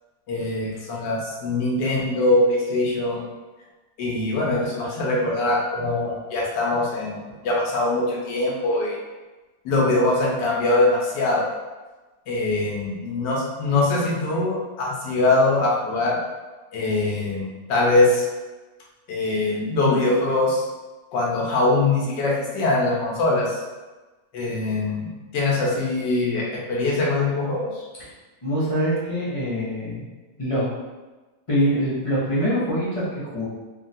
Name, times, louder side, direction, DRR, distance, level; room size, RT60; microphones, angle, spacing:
voice 1, 0.3-3.2 4.0-9.0 9.6-11.5 12.3-16.2 16.7-18.3 19.1-20.6 21.1-23.6 24.3-27.8, left 2 dB, 80° left, -3 dB, 1.4 m, -22 dB
voice 2, 28.4-30.0 30.4-30.6 31.5-33.4, equal, 45° left, -10 dB, 0.4 m, -24 dB
3.6 x 2.2 x 2.6 m, 1.2 s
omnidirectional pair, 1.9 m